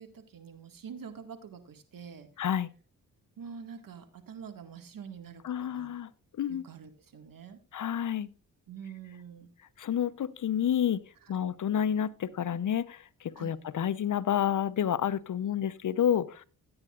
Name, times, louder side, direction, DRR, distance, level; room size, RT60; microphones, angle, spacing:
voice 1, 0.0-2.3 3.4-5.9 6.5-7.6 8.7-9.5 11.2-11.3 13.3-13.6, right 7 dB, 60° right, 1.9 m, -46 dB
voice 2, 2.4-2.7 5.4-6.1 6.4-6.6 7.7-8.3 9.8-11.0 11.3-16.4, left 9 dB, 55° left, 0.7 m, -29 dB
16.5 x 8.8 x 2.5 m
supercardioid pair, 55°, 37 cm